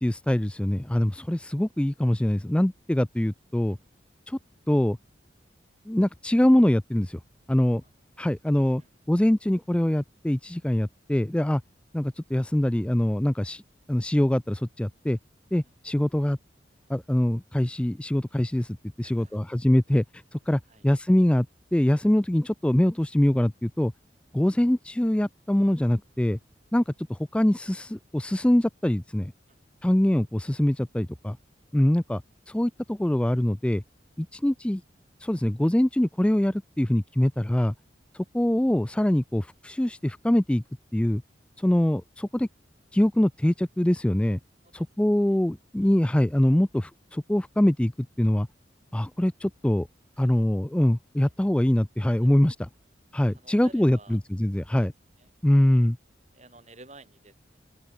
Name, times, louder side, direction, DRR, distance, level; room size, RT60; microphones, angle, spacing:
voice 1, 0.0-3.8 4.3-4.4 4.7-5.0 5.9-7.2 7.5-7.8 8.2-8.8 9.1-11.6 11.9-13.6 13.9-15.2 15.5-16.4 16.9-20.0 20.3-21.5 21.7-23.9 24.3-26.4 26.7-29.3 29.8-31.4 31.7-32.2 32.5-33.8 34.2-34.8 35.2-37.7 38.1-40.6 40.9-41.2 41.6-42.5 42.9-44.4 44.7-48.5 48.9-49.9 50.2-52.7 53.1-54.9 55.4-56.0, left 1 dB, 5° left, 0.3 m, -23 dB
voice 2, 1.0-1.4 3.7-3.8 7.8-7.9 8.2-8.3 8.8-8.9 10.7-10.8 19.0-19.4 20.7-20.8 29.5-29.6 41.6-41.7 44.6-45.4 45.8-46.0 50.2-50.5 51.2-51.3 52.2-52.3 53.3-54.2 54.7-54.9 55.2-55.3 56.3-57.6, right 2 dB, 40° right, 7.3 m, -54 dB
open air
head